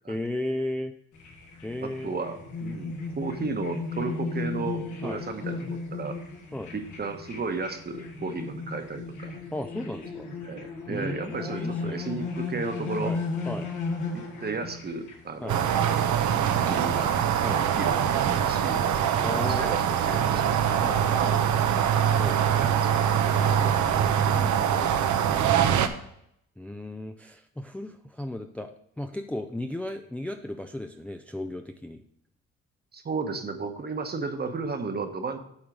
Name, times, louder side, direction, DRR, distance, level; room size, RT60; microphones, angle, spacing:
voice 1, 0.1-0.9 1.6-2.2 5.0-5.2 6.5-6.7 9.5-10.3 10.9-12.0 13.0-13.7 15.4-15.6 17.4-17.6 19.2-19.7 20.7-21.2 22.2-22.4 23.3-25.5 26.6-28.7 29.0-32.0, left 1 dB, 5° left, 5 dB, 0.4 m, -35 dB
sound 1, 1.1-17.8, left 3 dB, 80° left, 2.3 m, -36 dB
voice 2, 1.8-6.2 6.7-9.4 10.4-13.1 14.1-15.7 16.7-17.2 17.8-20.6 21.2-21.8 22.5-23.2 32.9-35.4, right 4 dB, 30° right, 6 dB, 1.1 m, -34 dB
sound 2, 15.5-25.9, right 9 dB, 75° right, 0.8 m, -23 dB
8.7 x 3.7 x 6.1 m, 0.72 s
cardioid pair, 90°, 30 cm